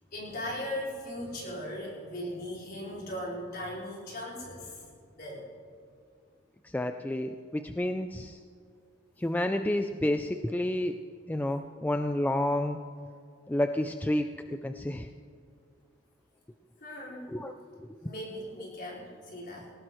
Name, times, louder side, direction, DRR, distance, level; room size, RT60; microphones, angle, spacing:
voice 1, 0.1-4.9 5.2-5.5 16.8-17.3 18.0-19.7, left 1 dB, 45° left, -5 dB, 4.7 m, -38 dB
voice 2, 6.6-8.4 9.2-11.0 11.3-12.8 13.5-15.1 17.3-17.5 18.0-18.1, left 1 dB, 10° left, 7 dB, 0.3 m, -30 dB
19.5 x 18.5 x 3.1 m, 2.3 s
head